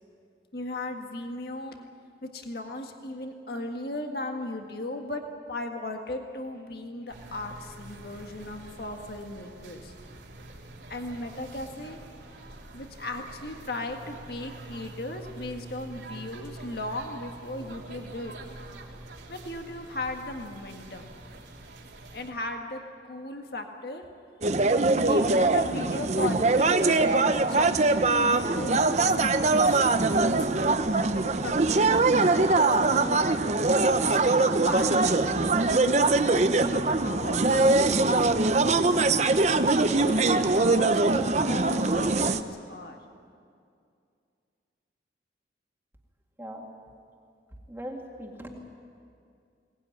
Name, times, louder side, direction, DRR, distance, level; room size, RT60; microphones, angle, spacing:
voice 1, 0.5-1.8 2.2-9.9 10.9-12.0 12.7-18.3 19.3-21.1 22.1-24.0 25.0-30.4 31.2-33.2 34.1-35.3 35.6-39.0 39.8-43.0, left 2 dB, 55° left, 4 dB, 1.7 m, -37 dB
sound 1, 7.1-22.3, right 2 dB, 70° right, 3.0 m, -45 dB
sound 2, 24.4-42.4, right 3 dB, 40° right, 0.8 m, -22 dB
voice 2, 46.4-46.7 47.7-48.6, equal, 10° right, 0 dB, 2.1 m, -39 dB
22.0 x 19.0 x 9.7 m, 2.4 s
head